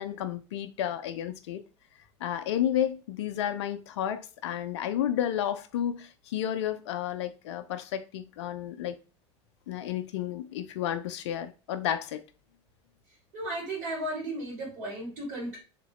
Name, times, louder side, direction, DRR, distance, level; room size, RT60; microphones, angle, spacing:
voice 1, 0.0-1.6 2.2-9.0 9.7-12.2, left 10 dB, 75° left, 0.4 m, -31 dB
voice 2, 13.3-15.6, right 1 dB, 65° right, 2.0 m, -34 dB
3.3 x 2.9 x 3.0 m
hypercardioid pair, 85°, 15 cm